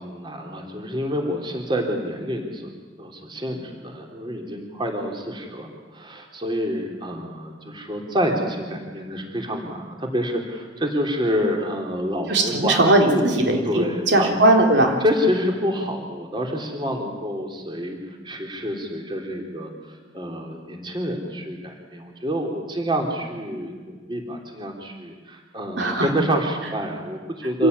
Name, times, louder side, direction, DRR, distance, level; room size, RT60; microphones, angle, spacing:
voice 1, 0.0-2.7 3.0-13.3 13.7-14.4 15.0-18.0 18.2-19.7 20.1-27.7, equal, 25° right, 2 dB, 3.4 m, -27 dB
voice 2, 12.3-15.0 25.8-26.1 27.6-27.7, right 1 dB, 75° right, 2 dB, 3.5 m, -19 dB
26.0 x 17.0 x 9.5 m, 1.4 s
head